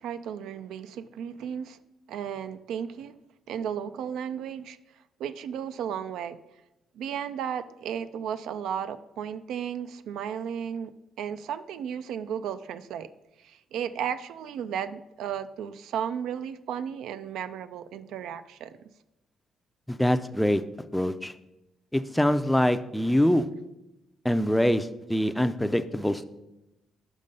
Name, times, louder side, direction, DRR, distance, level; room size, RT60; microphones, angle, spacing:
voice 1, 0.0-1.8 2.1-3.2 3.5-4.8 5.2-6.4 6.9-10.9 11.2-13.1 13.4-18.8, right 8 dB, 80° right, 12 dB, 0.3 m, -34 dB
voice 2, 19.9-20.6 20.9-21.3 21.9-23.5 24.2-26.2, equal, 5° left, 10 dB, 0.4 m, -24 dB
5.4 x 5.4 x 5.2 m, 0.94 s
cardioid pair, 90°, 0 cm